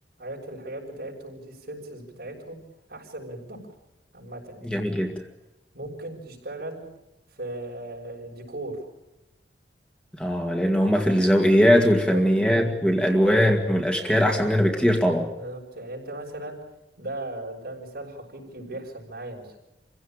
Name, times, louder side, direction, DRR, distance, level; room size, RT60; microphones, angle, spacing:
voice 1, 0.2-2.6 2.9-3.6 4.1-4.7 5.7-6.8 7.3-8.8 11.9-12.2 15.4-16.6 17.0-19.5, right 1 dB, 60° right, 0 dB, 6.2 m, -37 dB
voice 2, 4.6-5.2 10.1-15.3, equal, 5° left, 2 dB, 2.1 m, -20 dB
27.0 x 16.5 x 8.9 m, 0.95 s
head